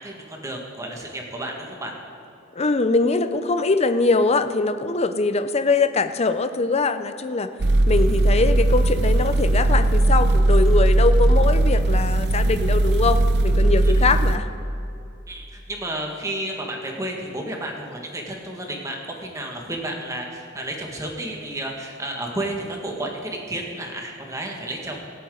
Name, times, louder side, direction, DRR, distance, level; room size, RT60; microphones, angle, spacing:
voice 1, 0.0-1.9 15.3-25.1, right 1 dB, 15° right, 0 dB, 1.8 m, -32 dB
voice 2, 2.6-7.5 7.9-14.5, left 3 dB, 30° left, 10 dB, 0.6 m, -22 dB
sound 1, 7.6-14.4, right 1 dB, 55° right, 0.6 m, -18 dB
25.0 x 8.5 x 3.9 m, 2.7 s
head